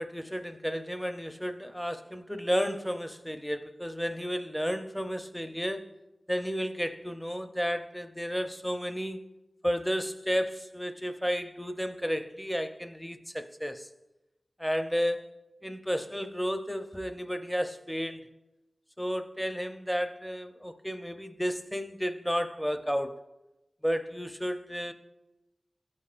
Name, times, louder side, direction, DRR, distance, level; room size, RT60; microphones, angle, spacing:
voice 1, 0.0-5.9 6.3-9.2 9.6-13.9 14.6-15.2 15.6-18.3 19.0-23.2 23.8-24.9, equal, 5° left, 0.5 m, -32 dB
16.0 x 8.5 x 2.5 m
wide cardioid pair, 75°, 0 cm